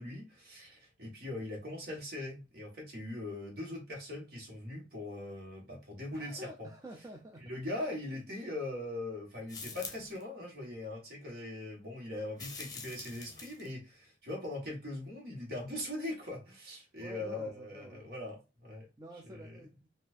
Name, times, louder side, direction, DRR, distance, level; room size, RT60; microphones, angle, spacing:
voice 1, 0.0-6.7 7.4-18.9 19.2-19.6, left 1 dB, 55° right, 1.5 m, -41 dB
voice 2, 6.1-7.5 17.0-18.1 19.0-19.9, equal, 20° right, 0.5 m, -49 dB
sound 1, 9.5-10.2 12.3-13.7, left 4 dB, 20° left, 0.8 m, -45 dB
4.2 x 2.5 x 2.5 m
head